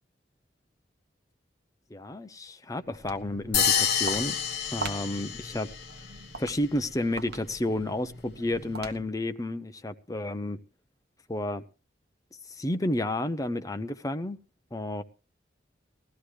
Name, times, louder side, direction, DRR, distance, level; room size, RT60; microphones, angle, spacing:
voice 1, 1.9-4.4 4.7-5.7 6.4-10.6 11.3-11.6 12.5-14.4 14.7-15.0, left 1 dB, 20° left, 0.8 m, -31 dB
Walk footsteps, 2.8-9.3, right 3 dB, 60° right, 1.4 m, -42 dB
sound 1, 3.5-5.8, left 8 dB, 55° left, 1.3 m, -27 dB
18.5 x 13.5 x 3.2 m
head